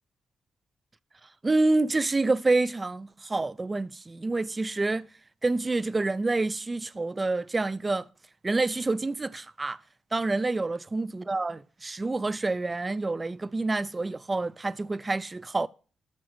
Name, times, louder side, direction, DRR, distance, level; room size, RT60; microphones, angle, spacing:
voice 1, 1.4-5.1 5.4-8.1 8.4-9.8 10.1-15.7, right 3 dB, 25° right, 0.4 m, -27 dB
9.5 x 6.2 x 6.1 m
cardioid pair, 95°, 0 cm